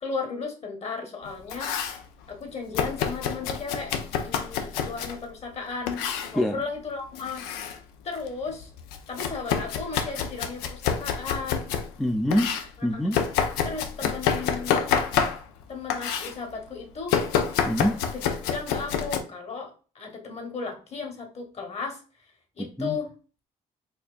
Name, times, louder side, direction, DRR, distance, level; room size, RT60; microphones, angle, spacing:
voice 1, 0.0-1.8 2.3-3.9 4.2-6.0 6.3-7.7 8.0-8.7 9.1-11.7 13.6-14.8 15.7-17.2 18.1-22.0 22.6-23.1, left 4 dB, 45° left, 4 dB, 1.3 m, -35 dB
Domestic sounds home sounds, 1.3-2.0 2.7-5.2 5.9-6.3 7.1-7.8 8.2-11.9 12.3-15.6 15.9-16.3 17.1-19.2, left 7 dB, 90° left, 0.5 m, -28 dB
voice 2, 12.0-12.5 12.8-13.2 14.0-14.1 17.7-18.0 22.6-23.0, equal, ahead, 4 dB, 0.5 m, -25 dB
4.3 x 2.7 x 2.5 m, 0.37 s
supercardioid pair, 70°, 16 cm